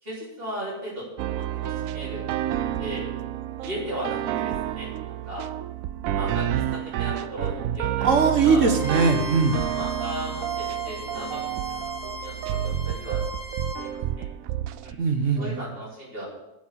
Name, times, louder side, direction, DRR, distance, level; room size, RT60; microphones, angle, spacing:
voice 1, 0.0-1.1 1.3-2.3 2.6-3.1 3.6-5.5 6.1-8.1 8.4-8.7 9.5-13.2 13.8-14.2 14.8-14.9 15.4-16.2, equal, 40° right, -6 dB, 3.8 m, -37 dB
sound 1, 1.2-14.9, right 11 dB, 80° right, 1.0 m, -29 dB
voice 2, 8.0-9.5 15.0-15.6, right 5 dB, 65° right, 5 dB, 1.6 m, -20 dB
Bowed string instrument, 8.7-13.9, left 2 dB, ahead, 3.2 m, -38 dB
8.7 x 7.0 x 8.0 m, 0.92 s
omnidirectional pair, 1.4 m